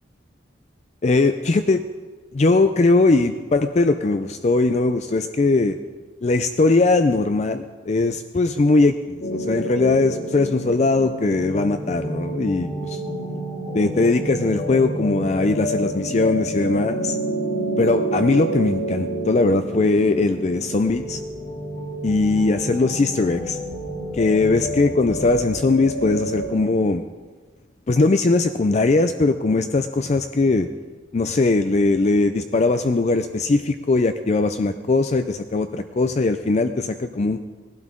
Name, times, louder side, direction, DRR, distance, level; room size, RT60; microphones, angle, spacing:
voice 1, 1.0-1.8 2.3-5.8 6.2-13.0 13.7-17.2 17.8-21.2 22.0-23.6 24.1-27.0 27.9-30.7 31.1-37.4, left 3 dB, 35° left, 8 dB, 0.4 m, -20 dB
sound 1, 9.2-26.5, right 1 dB, 55° left, 2.7 m, -29 dB
18.5 x 12.0 x 3.7 m, 1.4 s
head